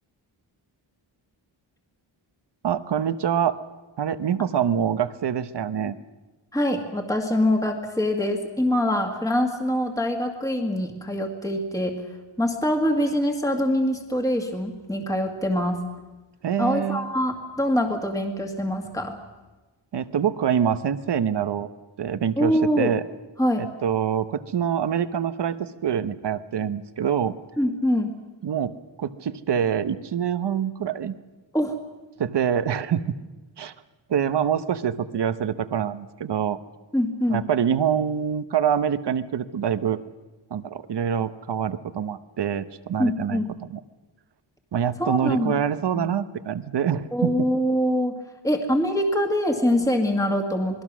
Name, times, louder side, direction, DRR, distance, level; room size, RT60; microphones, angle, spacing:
voice 1, 2.6-3.6 4.0-5.9 16.4-17.1 19.9-21.7 22.0-23.0 23.6-27.3 28.4-31.1 32.2-33.0 33.6-33.7 34.1-36.6 37.3-40.0 40.5-43.4 43.7-43.8 44.7-47.3, right 8 dB, 55° right, 12 dB, 1.0 m, -25 dB
voice 2, 6.5-12.0 12.4-15.8 16.6-19.2 22.4-22.9 23.4-23.7 27.6-28.1 31.5-31.8 36.9-37.4 43.0-43.5 45.0-45.6 45.9-46.1 47.1-48.1 48.4-50.8, equal, 5° left, 3 dB, 2.0 m, -24 dB
27.5 x 20.5 x 6.2 m, 1.2 s
wide cardioid pair, 155°, 48 cm